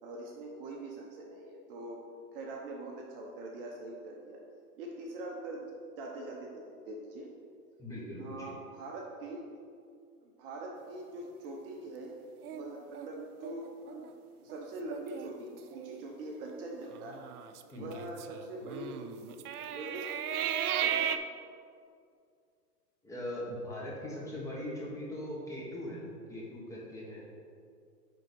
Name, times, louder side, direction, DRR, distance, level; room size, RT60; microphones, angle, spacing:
voice 1, 0.0-2.0 2.3-4.4 4.8-5.6 6.0-7.3 8.2-9.4 10.2-12.1 12.5-14.1 14.4-17.2 17.8-19.4 19.7-21.2, right 2 dB, 35° right, 0 dB, 1.0 m, -43 dB
voice 2, 7.8-8.5 17.7-17.9 23.0-27.3, left 1 dB, 5° left, -5 dB, 1.3 m, -40 dB
sound 1, 12.4-14.1 14.5-14.6 14.9-15.3 15.7-16.0 16.9-21.2, right 9 dB, 65° right, 0.6 m, -36 dB
9.6 x 3.8 x 5.3 m, 2.3 s
hypercardioid pair, 135°, 48 cm